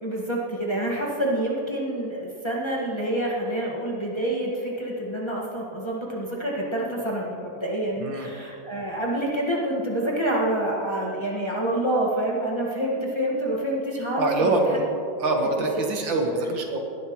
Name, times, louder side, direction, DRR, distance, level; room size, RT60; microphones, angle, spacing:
voice 1, 0.0-14.8 15.6-15.7, right 1 dB, 15° left, -4 dB, 1.6 m, -27 dB
voice 2, 8.0-8.3 14.2-14.8 15.2-16.8, right 2 dB, 80° right, 2 dB, 2.2 m, -24 dB
19.5 x 11.5 x 3.1 m, 2.7 s
omnidirectional pair, 2.0 m